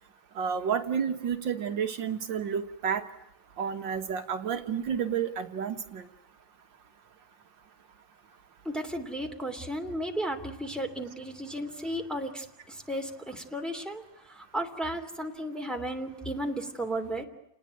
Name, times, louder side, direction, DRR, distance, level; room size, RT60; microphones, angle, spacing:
voice 1, 0.4-3.0 3.6-6.0, right 7 dB, 70° right, 7 dB, 2.0 m, -30 dB
voice 2, 8.6-14.0 14.3-17.3, right 1 dB, ahead, 3 dB, 2.8 m, -34 dB
29.5 x 20.0 x 9.1 m, 0.88 s
omnidirectional pair, 2.2 m